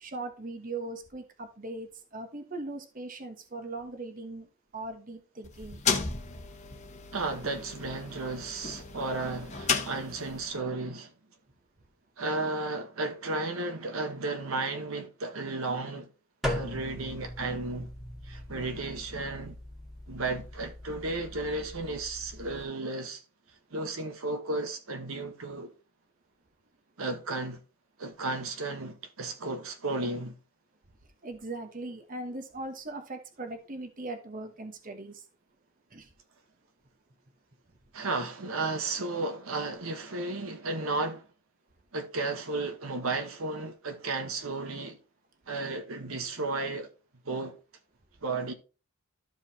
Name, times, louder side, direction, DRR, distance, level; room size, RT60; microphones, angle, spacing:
voice 1, 0.0-4.5 4.7-5.8 31.2-35.2 35.9-36.1, right 2 dB, 40° right, 1.1 m, -39 dB
sound 1, 5.4-10.5, left 5 dB, 30° left, 1.0 m, -34 dB
voice 2, 7.1-11.1 12.2-16.1 16.4-17.9 18.2-19.6 20.1-23.2 23.7-25.7 27.0-27.6 28.0-30.4 37.9-41.2 41.9-45.0 45.5-46.9 47.2-47.6 48.2-48.5, right 3 dB, 75° right, 1.2 m, -33 dB
sound 2, 16.4-22.6, left 1 dB, ahead, 1.8 m, -40 dB
13.0 x 4.9 x 2.8 m
head